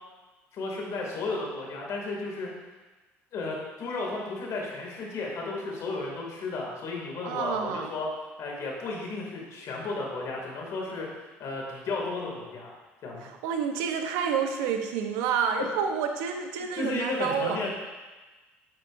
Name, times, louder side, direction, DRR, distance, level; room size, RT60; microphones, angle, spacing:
voice 1, 0.5-2.5 3.3-8.1 8.4-11.1 11.4-12.7 13.0-13.3 16.6-17.7, left 3 dB, 60° left, -1 dB, 2.5 m, -33 dB
voice 2, 7.2-7.9 13.2-17.6, right 7 dB, 75° right, 5 dB, 0.9 m, -29 dB
10.0 x 7.9 x 2.7 m, 1.2 s
hypercardioid pair, 65°, 6 cm